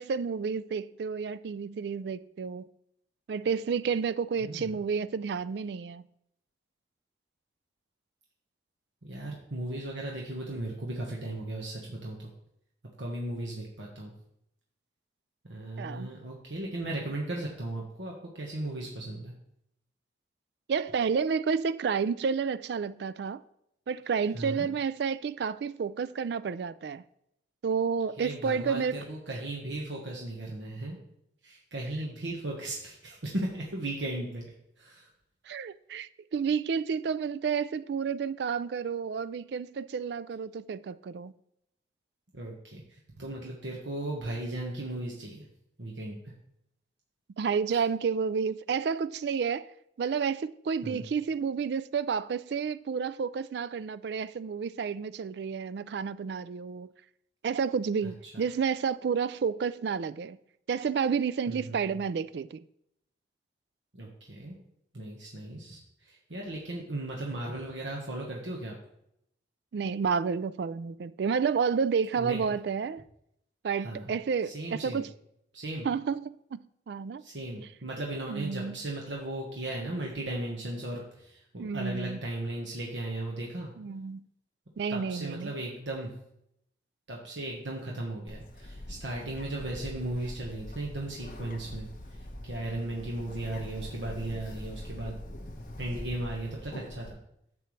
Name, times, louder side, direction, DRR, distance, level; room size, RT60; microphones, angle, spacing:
voice 1, 0.0-2.7 3.3-6.0 15.8-16.1 20.7-23.4 23.9-27.0 27.6-29.0 35.5-41.3 47.4-49.7 50.0-56.9 57.4-60.4 60.7-62.6 69.7-73.0 73.6-75.1 75.8-76.6 76.9-77.2 78.3-78.8 81.6-82.2 83.8-84.3 84.8-85.6, right 6 dB, 65° right, 0.3 m, -30 dB
voice 2, 4.4-4.7 9.0-12.3 13.0-14.1 15.5-19.3 24.3-24.7 28.2-31.0 31.4-34.4 34.8-35.1 42.3-45.5 45.8-46.3 47.7-47.8 50.8-51.0 58.0-58.1 61.5-62.0 63.9-64.6 64.9-68.7 72.2-72.4 73.8-74.1 74.4-75.0 75.5-75.9 77.2-83.7 84.9-86.1 87.1-91.9 92.4-95.1 95.8-97.2, right 1 dB, 80° right, 1.3 m, -36 dB
Bird, 88.3-97.1, left 1 dB, 45° left, 1.0 m, -43 dB
11.0 x 6.9 x 3.2 m
head